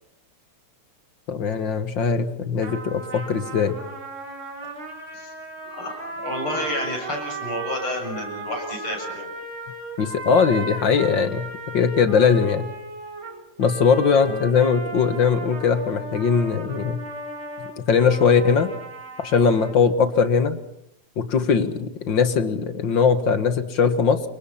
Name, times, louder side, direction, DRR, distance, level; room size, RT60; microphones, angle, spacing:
voice 1, 1.3-3.8 10.0-11.5 11.7-12.7 13.6-17.0 17.9-18.7 19.2-20.6 21.2-24.2, left 6 dB, 60° left, 10 dB, 2.3 m, -20 dB
sound 1, 2.6-19.8, right 3 dB, 70° right, 5.8 m, -36 dB
voice 2, 5.7-9.3 14.3-14.4, left 1 dB, 85° left, 3 dB, 8.1 m, -30 dB
29.0 x 24.5 x 5.8 m, 0.75 s
omnidirectional pair, 2.3 m